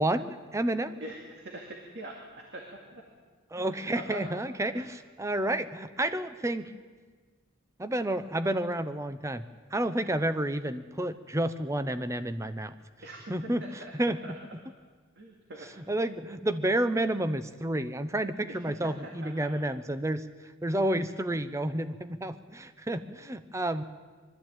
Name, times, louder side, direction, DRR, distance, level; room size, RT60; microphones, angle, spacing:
voice 1, 0.0-0.9 3.5-6.7 7.8-9.4 9.7-12.7 13.3-14.2 15.8-20.2 20.6-23.8, right 1 dB, 15° right, 12 dB, 0.7 m, -30 dB
voice 2, 0.9-2.7 2.9-3.0 3.6-3.7 3.9-4.2 4.7-4.8 13.0-13.2 13.6-13.9 14.2-14.3 15.2-15.7 18.5-18.6 19.0-19.5, right 1 dB, 55° right, 1 dB, 2.2 m, -43 dB
22.0 x 13.5 x 9.0 m, 1.5 s
head